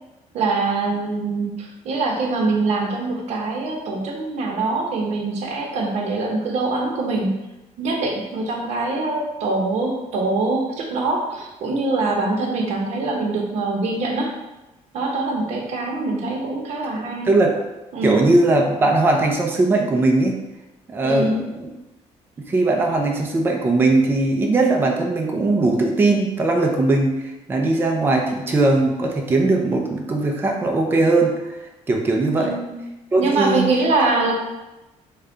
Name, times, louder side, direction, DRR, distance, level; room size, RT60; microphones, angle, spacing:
voice 1, 0.3-7.3 7.8-14.3 14.9-17.3 17.9-18.2 21.0-21.4 32.4-32.7 33.2-34.3, right 3 dB, 60° right, 0 dB, 0.7 m, -23 dB
voice 2, 17.2-17.6 18.0-20.4 20.9-21.7 22.5-31.6 31.9-32.6 33.1-33.7, right 2 dB, 15° right, 1 dB, 0.3 m, -19 dB
3.5 x 2.2 x 3.8 m, 1.0 s
cardioid pair, 155°, 13 cm